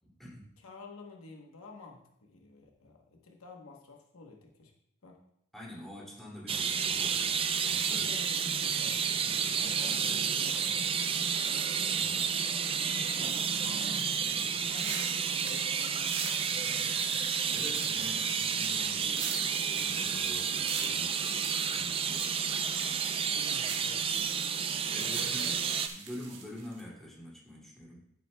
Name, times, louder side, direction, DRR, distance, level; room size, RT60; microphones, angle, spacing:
voice 1, 0.0-0.5 5.5-8.1 11.9-12.3 17.5-22.4 24.9-25.6 25.8-28.0, left 1 dB, ahead, -5 dB, 2.4 m, -46 dB
voice 2, 0.6-4.7 5.0-5.2 7.9-10.9 12.8-17.2 23.3-24.3 25.0-25.6, left 3 dB, 70° left, 1 dB, 1.0 m, -50 dB
sound 1, 6.5-25.9, right 6 dB, 25° right, 0.4 m, -31 dB
sound 2, 14.7-26.8, right 5 dB, 55° right, 1.5 m, -44 dB
10.5 x 8.9 x 2.2 m, 0.78 s
head